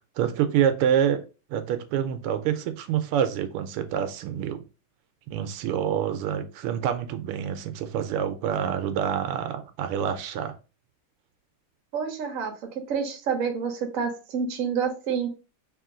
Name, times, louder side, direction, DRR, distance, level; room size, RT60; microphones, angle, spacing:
voice 1, 0.2-1.2 1.5-4.6 5.3-10.5, right 9 dB, 85° right, 1.5 m, -27 dB
voice 2, 11.9-12.5 12.9-15.3, right 6 dB, 55° right, 0.9 m, -28 dB
3.7 x 3.0 x 3.7 m
omnidirectional pair, 2.4 m